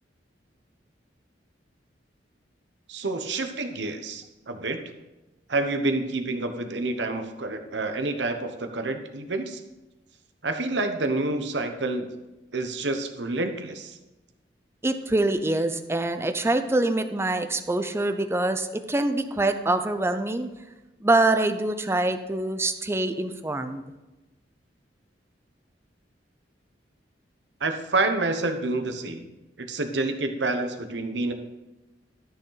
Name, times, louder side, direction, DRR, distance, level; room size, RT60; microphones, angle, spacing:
voice 1, 2.9-4.8 5.5-9.6 10.4-12.1 12.5-14.0 27.6-29.2 29.6-31.3, right 2 dB, 75° right, 7 dB, 1.1 m, -28 dB
voice 2, 14.8-20.5 21.0-23.8, right 2 dB, 15° right, 9 dB, 0.6 m, -25 dB
13.0 x 6.6 x 4.0 m, 1.0 s
head